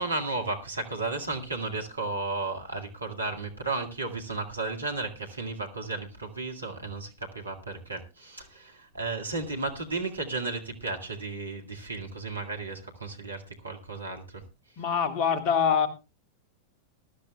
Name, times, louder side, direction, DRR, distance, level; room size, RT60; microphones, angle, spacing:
voice 1, 0.0-14.4, right 3 dB, 80° right, 3 dB, 1.9 m, -34 dB
voice 2, 14.8-15.9, left 7 dB, 40° left, 10 dB, 1.6 m, -24 dB
20.0 x 12.5 x 2.3 m, 0.27 s
figure-of-eight pair, 90°, 0 cm